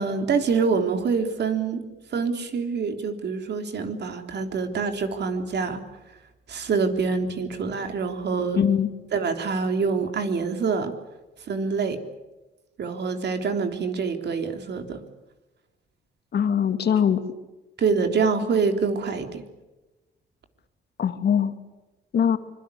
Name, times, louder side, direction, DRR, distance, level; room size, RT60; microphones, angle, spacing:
voice 1, 0.0-1.9 2.1-5.8 6.5-8.6 9.1-10.9 11.5-12.0 12.8-15.0 17.8-19.4, right 5 dB, 60° right, 6 dB, 3.6 m, -25 dB
voice 2, 8.5-8.9 16.3-17.2 21.0-21.5 22.1-22.4, left 8 dB, 55° left, 9 dB, 2.3 m, -21 dB
25.0 x 22.5 x 8.5 m, 1.1 s
cardioid pair, 90°, 20 cm